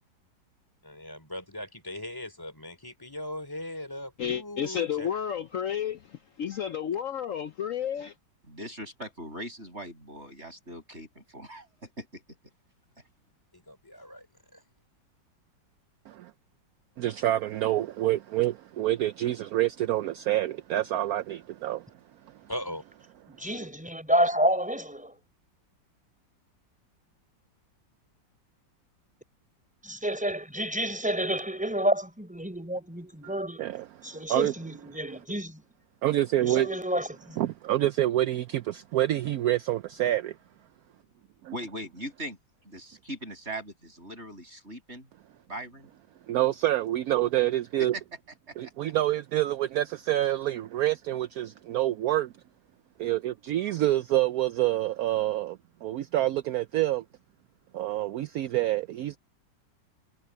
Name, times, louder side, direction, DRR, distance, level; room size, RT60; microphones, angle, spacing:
voice 1, 0.9-5.1 13.5-14.3 14.5-14.6 22.5-22.8, left 1 dB, 10° left, 2.9 m, -39 dB
voice 2, 4.2-8.1, left 8 dB, 65° left, 0.8 m, -31 dB
voice 3, 8.5-12.2 41.5-42.4 42.6-45.1 45.5-45.9 48.5-48.6, right 1 dB, 35° right, 6.8 m, -40 dB
voice 4, 17.0-21.9 33.2-33.3 33.6-34.5 35.1-35.2 36.0-36.8 37.4-40.4 41.4-41.5 46.3-47.9 48.6-52.3 53.0-57.0 57.7-59.2, right 14 dB, 75° right, 0.9 m, -27 dB
voice 5, 23.3-25.2 29.8-33.6 34.0-35.6 36.4-37.4, equal, 5° right, 4.6 m, -29 dB
omnidirectional pair, 2.0 m